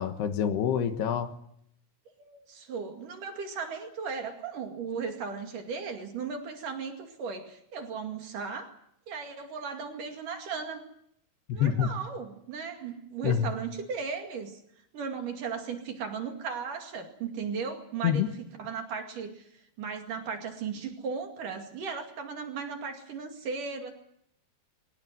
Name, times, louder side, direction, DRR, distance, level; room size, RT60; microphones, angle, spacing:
voice 1, 0.0-1.3 11.5-11.9 13.2-13.5 18.0-18.3, left 9 dB, 75° left, 8 dB, 3.5 m, -26 dB
voice 2, 2.2-8.8 9.1-10.8 11.5-14.6 14.9-23.9, right 5 dB, 55° right, 4 dB, 3.6 m, -36 dB
23.5 x 18.5 x 9.4 m, 0.75 s
omnidirectional pair, 4.8 m